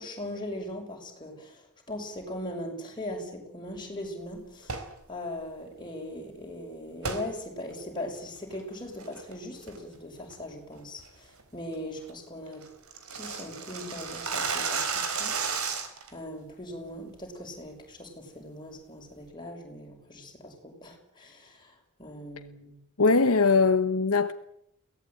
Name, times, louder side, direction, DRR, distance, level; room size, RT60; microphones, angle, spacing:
voice 1, 0.0-12.6 13.1-15.8 16.1-22.8, left 1 dB, 20° left, 6.2 m, -40 dB
sound 1, 4.6-4.9 7.0-7.2 7.7-7.8 8.4-8.6 9.0-9.3 9.7-10.0 10.3-10.4 10.8-11.0 11.4-11.5 11.8-11.9 12.1-12.2 12.5-16.1, right 5 dB, 75° right, 3.9 m, -32 dB
voice 2, 23.0-24.3, left 4 dB, 70° left, 1.1 m, -21 dB
23.0 x 18.0 x 9.3 m
head